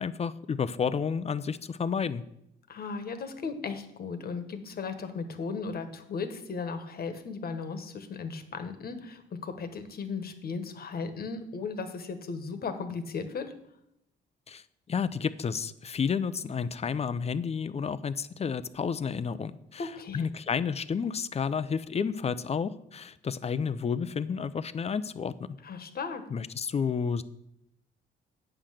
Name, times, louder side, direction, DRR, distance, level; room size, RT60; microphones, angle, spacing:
voice 1, 0.0-2.2 14.5-14.6 14.9-25.3 26.3-27.2, left 6 dB, 30° left, 15 dB, 0.5 m, -31 dB
voice 2, 2.7-13.5 19.8-20.3 25.6-26.2, left 5 dB, 50° left, 8 dB, 1.3 m, -36 dB
8.8 x 5.8 x 6.4 m, 0.79 s
cardioid pair, 90°, 20 cm